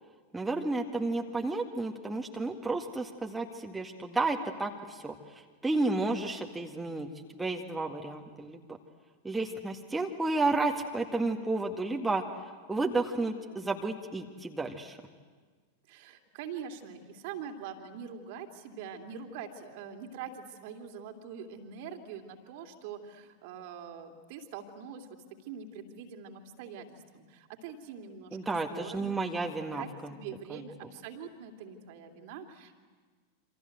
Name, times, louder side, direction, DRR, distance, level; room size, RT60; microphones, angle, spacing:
voice 1, 0.3-8.8 9.2-12.2 12.7-15.0 28.3-30.1 30.5-30.6, right 3 dB, 10° right, 1 dB, 1.9 m, -32 dB
voice 2, 15.9-28.4 28.7-29.2 29.7-32.7, right 7 dB, 50° right, 4 dB, 2.8 m, -44 dB
28.0 x 26.5 x 8.0 m, 1.5 s
figure-of-eight pair, 90°, 0 cm